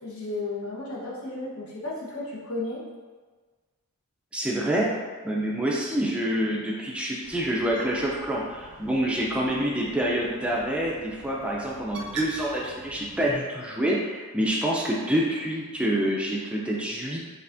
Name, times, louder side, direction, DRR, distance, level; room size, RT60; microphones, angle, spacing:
voice 1, 0.0-2.8, left 2 dB, 65° left, -5 dB, 1.1 m, -33 dB
voice 2, 4.3-4.9 5.2-17.2, right 1 dB, 5° right, -3 dB, 0.4 m, -27 dB
Bird, 7.2-13.3, right 2 dB, 80° right, 0.6 m, -43 dB
5.4 x 3.4 x 2.5 m, 1.4 s
head